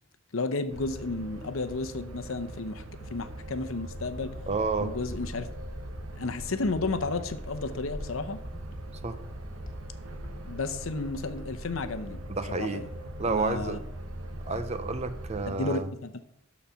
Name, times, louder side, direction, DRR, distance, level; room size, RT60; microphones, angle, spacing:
voice 1, 0.3-2.8 3.1-4.3 4.8-5.5 6.2-8.4 10.5-12.2 12.5-12.9 13.3-13.8 14.4-14.6 15.5-16.2, left 3 dB, 80° left, 9 dB, 0.8 m, -32 dB
sound 1, 0.7-15.5, right 1 dB, 90° right, 0.9 m, -41 dB
sound 2, 4.2-10.8, equal, 40° left, 1.4 m, -46 dB
voice 2, 4.5-4.9 9.0-9.2 12.3-12.8 13.2-13.8 14.5-15.9, right 4 dB, 30° right, 10 dB, 0.6 m, -30 dB
12.0 x 4.2 x 5.6 m, 0.77 s
head